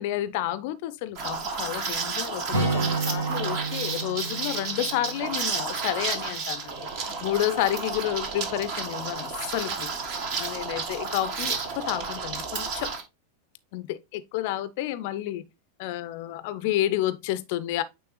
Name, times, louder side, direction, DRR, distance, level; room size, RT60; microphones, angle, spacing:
voice 1, 0.0-6.8 7.0-9.9 10.4-12.9 13.7-15.4 15.8-17.8, left 14 dB, 50° left, 0.5 m, -30 dB
Liquid, 1.2-13.0, right 4 dB, 45° right, 1.4 m, -32 dB
Acoustic guitar, 2.5-6.2, right 3 dB, 75° right, 2.2 m, -31 dB
8.8 x 3.5 x 3.1 m
figure-of-eight pair, 90°, 0 cm